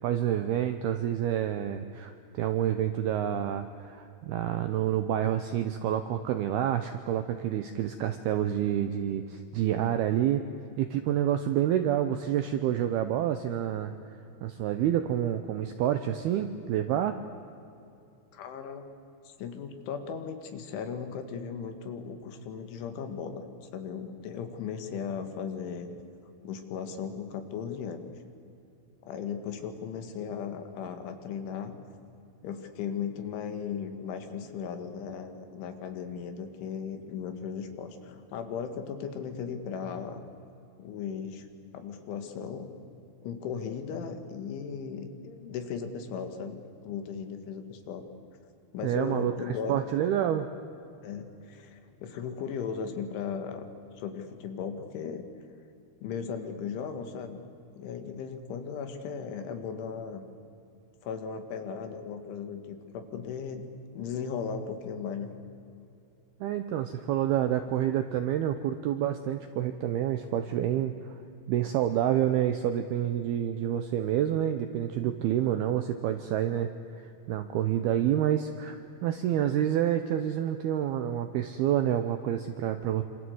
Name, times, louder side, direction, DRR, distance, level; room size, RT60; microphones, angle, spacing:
voice 1, 0.0-10.4 10.8-17.2 48.8-50.5 66.4-71.2 71.5-76.7 77.0-78.8 79.0-83.0, right 11 dB, 90° right, 8 dB, 2.2 m, -28 dB
voice 2, 18.3-18.8 19.4-25.9 26.4-28.1 29.0-31.8 32.4-40.2 40.8-41.5 41.7-42.7 43.2-48.1 48.7-49.9 51.0-53.7 54.0-55.3 56.0-57.5 57.7-60.3 61.0-63.7 63.9-65.4, left 6 dB, 75° left, 7 dB, 4.2 m, -37 dB
27.0 x 26.5 x 8.0 m, 2.7 s
omnidirectional pair, 5.7 m